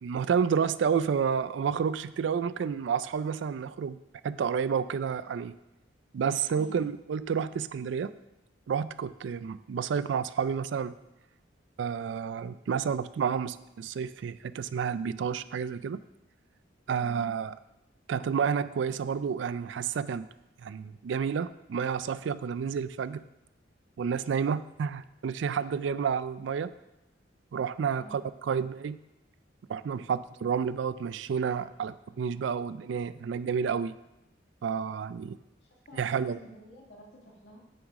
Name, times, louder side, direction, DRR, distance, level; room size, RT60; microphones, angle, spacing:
voice 1, 0.0-4.0 4.2-5.5 6.1-8.1 8.7-10.9 11.8-16.0 16.9-17.5 18.1-20.3 20.6-23.2 24.0-26.7 27.5-29.0 29.7-34.0 34.6-35.4 36.0-36.4, right 6 dB, 70° right, 15 dB, 0.3 m, -30 dB
voice 2, 6.5-6.9 17.0-17.3 27.9-28.3 35.7-37.6, equal, 65° left, -2 dB, 1.9 m, -50 dB
9.0 x 6.1 x 3.6 m, 0.91 s
head